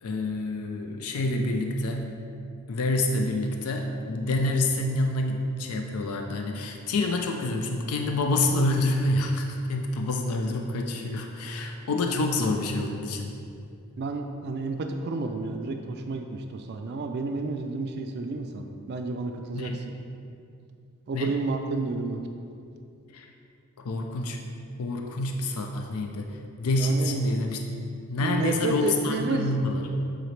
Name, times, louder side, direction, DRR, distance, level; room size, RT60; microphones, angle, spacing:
voice 1, 0.0-2.1 2.7-13.3 19.5-19.8 21.1-21.3 23.1-23.3 23.8-24.4 24.8-29.9, left 2 dB, 90° left, 3 dB, 0.4 m, -27 dB
voice 2, 14.0-19.9 21.1-22.2 26.8-27.2 28.2-29.6, right 3 dB, 50° right, 5 dB, 0.3 m, -31 dB
7.8 x 3.9 x 3.2 m, 2.5 s
head